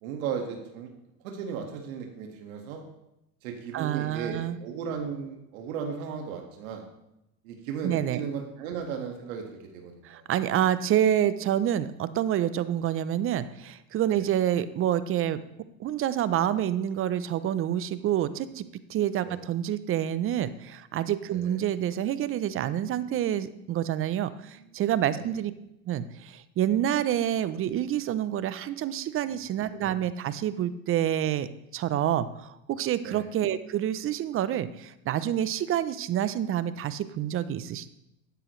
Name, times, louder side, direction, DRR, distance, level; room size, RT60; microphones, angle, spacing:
voice 1, 0.0-0.9 1.2-2.8 3.4-6.8 7.4-10.2 14.1-14.2 19.2-19.4 21.3-21.6 24.6-24.7 25.1-25.3 29.2-29.4 33.0-33.3, right 6 dB, 75° right, 3 dB, 1.9 m, -36 dB
voice 2, 3.7-4.6 7.8-8.2 10.0-15.4 15.8-18.6 18.9-25.5 25.9-37.9, right 11 dB, 30° right, 15 dB, 0.6 m, -28 dB
12.5 x 9.8 x 3.2 m, 0.86 s
supercardioid pair, 115°, 42 cm